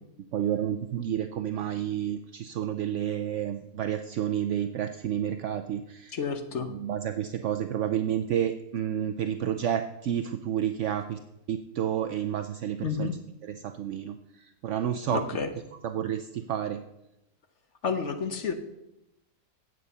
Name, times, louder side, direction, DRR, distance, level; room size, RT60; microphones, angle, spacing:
voice 1, 0.3-6.2 6.7-11.2 11.5-13.1 13.5-15.2 15.8-16.8, right 10 dB, 70° right, 8 dB, 0.7 m, -30 dB
voice 2, 6.1-6.7 12.8-13.1 15.1-15.5 17.8-18.5, left 6 dB, 50° left, 7 dB, 1.1 m, -30 dB
9.5 x 8.4 x 5.5 m, 0.88 s
omnidirectional pair, 1.8 m